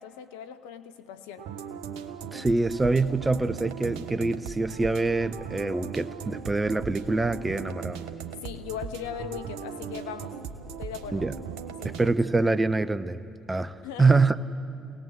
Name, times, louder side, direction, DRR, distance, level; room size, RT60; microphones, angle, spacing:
voice 1, 0.0-1.5 8.4-10.4 10.8-11.2 11.8-11.9 13.8-14.1, left 8 dB, 75° left, 1.0 m, -39 dB
sound 1, 1.4-12.1, right 6 dB, 70° right, 1.2 m, -38 dB
voice 2, 2.3-8.0 11.1-11.3 11.8-13.2 13.5-14.4, right 3 dB, 20° right, 0.9 m, -25 dB
27.5 x 18.5 x 8.0 m
hypercardioid pair, 55°, 0 cm